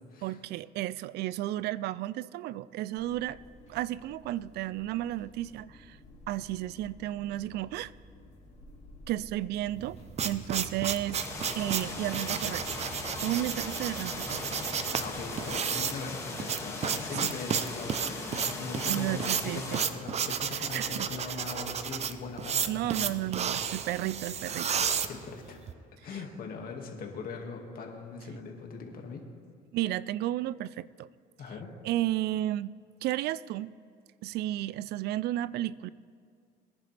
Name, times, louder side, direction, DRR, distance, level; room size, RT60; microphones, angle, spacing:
voice 1, 0.2-3.4 3.7-6.0 6.3-7.9 9.1-10.0 10.2-11.2 11.5-12.6 13.2-14.5 17.2-17.3 18.9-19.8 20.5-21.1 22.7-24.8 29.7-31.1 31.8-32.7 33.0-33.7 34.2-35.9, right 14 dB, 75° right, 20 dB, 0.4 m, -33 dB
sound 1, 3.0-15.5, left 1 dB, 40° left, 2.4 m, -54 dB
sound 2, 9.8-25.7, right 7 dB, 40° right, 0.7 m, -32 dB
sound 3, 11.1-19.9, left 2 dB, 15° left, 2.1 m, -39 dB
voice 2, 14.9-23.1 24.6-25.6 26.0-29.2 31.4-31.7, left 4 dB, 60° left, 2 dB, 2.1 m, -41 dB
22.5 x 10.5 x 3.4 m, 2.2 s
cardioid pair, 110°, 17 cm